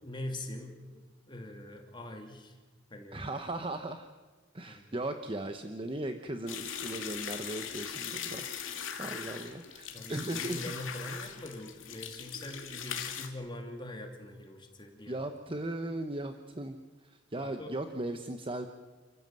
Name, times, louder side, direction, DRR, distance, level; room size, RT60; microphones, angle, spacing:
voice 1, 0.0-1.0 1.3-2.5 2.9-3.2 4.7-5.0 9.9-15.2 17.4-17.7, left 1 dB, 25° left, 3 dB, 2.9 m, -43 dB
voice 2, 3.1-4.1 4.5-10.6 15.1-18.7, right 1 dB, 25° right, 7 dB, 1.0 m, -38 dB
sound 1, 6.5-13.3, left 7 dB, 90° left, 2.6 m, -40 dB
29.0 x 15.0 x 7.7 m, 1.4 s
head